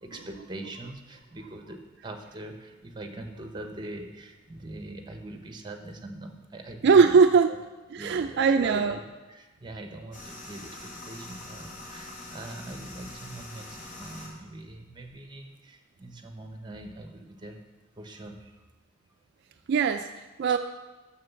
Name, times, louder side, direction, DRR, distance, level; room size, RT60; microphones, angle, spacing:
voice 1, 0.0-7.2 7.5-7.6 8.0-9.0 9.3-17.6 18.0-18.6, right 2 dB, 20° right, 5 dB, 0.9 m, -42 dB
voice 2, 6.8-7.5 7.9-9.0 19.7-20.1 20.4-20.6, right 5 dB, 55° right, 7 dB, 0.4 m, -20 dB
sound 1, 10.1-14.3, left 2 dB, 40° left, 1.9 m, -43 dB
7.5 x 6.4 x 7.0 m, 1.2 s
head